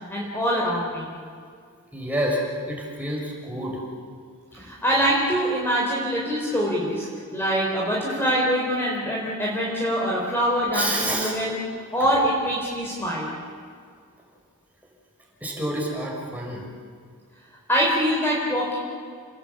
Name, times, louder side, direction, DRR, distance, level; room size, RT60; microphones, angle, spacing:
voice 1, 0.1-1.1 4.5-7.1 7.3-11.6 11.9-13.3 17.7-18.8, equal, 10° left, -4 dB, 4.2 m, -24 dB
voice 2, 1.9-2.4 2.7-3.8 4.5-4.7 10.7-11.3 15.4-16.7, right 1 dB, 5° right, -1 dB, 6.0 m, -28 dB
30.0 x 20.5 x 8.6 m, 2.1 s
head